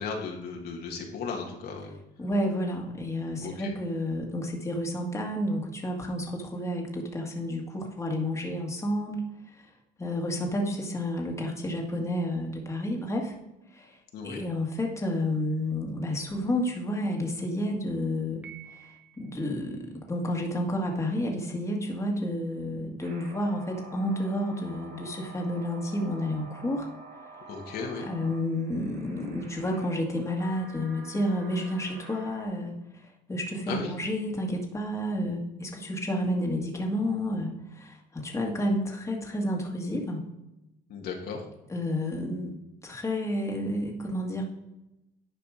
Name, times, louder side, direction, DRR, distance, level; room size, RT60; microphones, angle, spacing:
voice 1, 0.0-1.9 3.4-3.7 14.1-14.4 27.5-28.1 33.7-33.9 40.9-41.5, left 5 dB, 70° left, 1 dB, 1.8 m, -35 dB
voice 2, 2.2-9.2 9.5-9.7 10.0-13.3 13.7-14.0 14.2-18.4 18.7-26.9 28.0-40.2 41.7-42.5 42.8-44.4, left 1 dB, 15° left, 0 dB, 1.8 m, -30 dB
Piano, 18.4-19.6, right 9 dB, 10° right, 1.4 m, -49 dB
sound 1, 23.0-32.4, right 3 dB, 80° right, 2.3 m, -48 dB
10.0 x 5.1 x 5.0 m, 0.94 s
cardioid pair, 110°, 17 cm